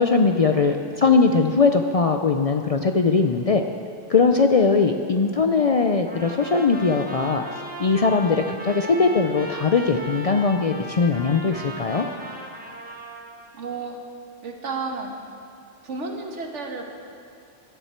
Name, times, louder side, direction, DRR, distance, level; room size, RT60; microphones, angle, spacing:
voice 1, 0.0-3.6 4.1-7.4 7.8-12.1, left 4 dB, 55° left, 5 dB, 0.4 m, -20 dB
Trumpet, 6.1-13.5, equal, 10° right, 1.0 m, -37 dB
voice 2, 13.5-14.0 14.4-15.1 15.8-16.8, right 4 dB, 75° right, 2 dB, 1.6 m, -31 dB
16.5 x 10.0 x 4.4 m, 2.4 s
omnidirectional pair, 1.2 m